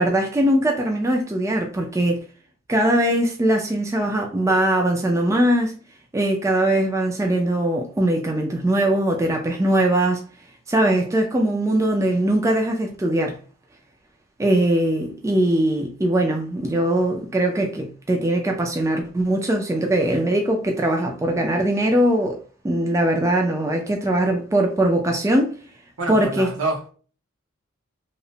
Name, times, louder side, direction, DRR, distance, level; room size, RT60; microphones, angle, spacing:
voice 1, 0.0-2.2 2.7-5.8 6.1-10.2 10.7-13.4 14.4-25.5 26.1-26.5, right 1 dB, 15° right, 0.3 m, -21 dB
voice 2, 26.0-26.9, right 2 dB, 75° right, 1.0 m, -27 dB
2.9 x 2.0 x 2.6 m
head